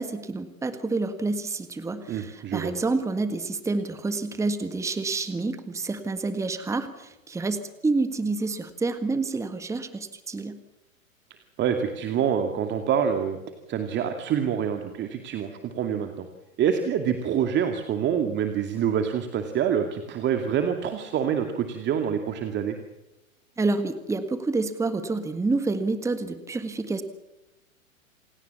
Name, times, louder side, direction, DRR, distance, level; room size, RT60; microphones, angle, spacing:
voice 1, 0.0-10.6 23.6-27.0, right 3 dB, 5° right, 10 dB, 1.7 m, -28 dB
voice 2, 2.1-2.7 11.6-13.4 13.7-16.3 16.6-22.8, right 8 dB, 25° right, 6 dB, 2.4 m, -26 dB
28.0 x 18.0 x 7.2 m, 0.98 s
hypercardioid pair, 110°, 41 cm